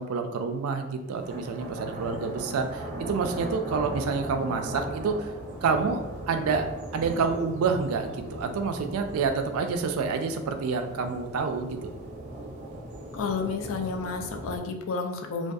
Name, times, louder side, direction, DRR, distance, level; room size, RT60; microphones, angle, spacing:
voice 1, 0.0-5.3 5.6-6.0 6.3-6.7 6.9-11.8, right 5 dB, 85° right, 6 dB, 0.3 m, -28 dB
sound 1, 1.2-14.6, right 1 dB, 35° right, 0.5 m, -38 dB
voice 2, 13.1-15.5, left 4 dB, 70° left, 4 dB, 0.3 m, -31 dB
2.6 x 2.3 x 2.3 m, 1.0 s
head